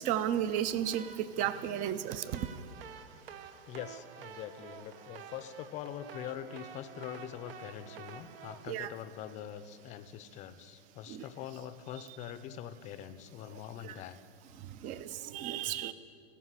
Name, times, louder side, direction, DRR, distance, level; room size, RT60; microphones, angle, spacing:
voice 1, 0.1-2.5 8.7-8.9 11.1-11.2 13.8-13.9 14.8-15.9, right 10 dB, 25° right, 14 dB, 0.4 m, -33 dB
sound 1, 0.7-9.8, right 6 dB, 70° right, 1.0 m, -50 dB
voice 2, 3.7-14.2 15.7-15.8, left 10 dB, 25° left, 12 dB, 0.5 m, -44 dB
14.5 x 5.4 x 8.2 m, 2.4 s
hypercardioid pair, 120°, 30 cm